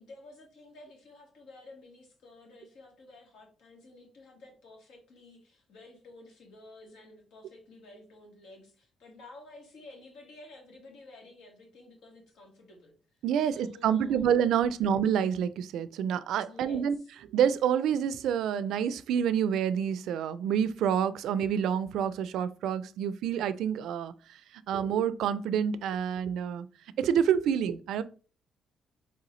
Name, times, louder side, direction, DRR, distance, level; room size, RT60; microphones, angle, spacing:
voice 1, 0.0-12.9 13.5-14.5 16.4-17.1, left 2 dB, 85° left, 1.8 m, -52 dB
voice 2, 13.2-17.0 17.3-24.1 24.7-26.7 27.0-28.0, right 8 dB, 80° right, 0.3 m, -28 dB
4.3 x 3.8 x 3.1 m
cardioid pair, 90°, 0 cm